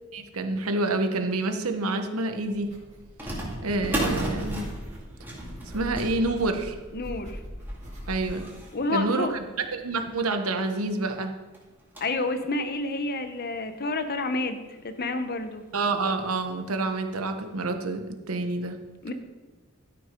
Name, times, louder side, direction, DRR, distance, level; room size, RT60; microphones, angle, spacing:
voice 1, 0.1-2.7 3.2-4.7 5.7-6.8 8.1-8.5 8.9-9.4 9.7-11.3 15.7-18.8, right 2 dB, 80° right, 6 dB, 1.1 m, -28 dB
sound 1, 1.7-1.8 3.2-10.1 10.7-10.8 11.0-11.1 11.5-12.3 12.8-12.9 13.7-13.8 14.2-14.3 15.7-15.9 16.3-16.4 17.1-17.2, equal, 10° right, 2.3 m, -35 dB
sound 2, 2.4-8.5, equal, 35° right, 2.5 m, -41 dB
voice 2, 6.9-7.4 8.7-9.4 12.0-15.6 19.0-19.1, left 2 dB, 45° left, 9 dB, 0.8 m, -29 dB
12.5 x 6.1 x 5.2 m, 1.2 s
head